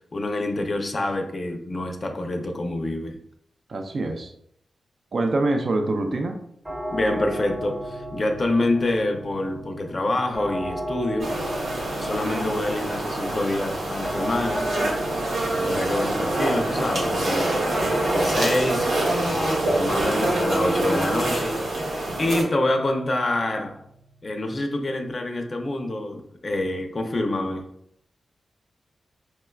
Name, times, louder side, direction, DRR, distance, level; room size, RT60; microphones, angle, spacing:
voice 1, 0.1-3.2 6.9-11.3 12.0-14.8 15.5-17.6 18.1-18.9 19.2-21.6 21.8-23.8 24.2-27.7, left 2 dB, 40° left, 4 dB, 0.5 m, -26 dB
voice 2, 3.7-4.3 5.1-6.4, right 2 dB, 55° right, 4 dB, 0.4 m, -25 dB
sound 1, 6.6-25.5, right 1 dB, 15° right, 1.0 m, -36 dB
sound 2, 11.2-22.4, right 1 dB, 90° right, 1.0 m, -25 dB
4.5 x 2.2 x 2.2 m, 0.73 s
wide cardioid pair, 90°, 0 cm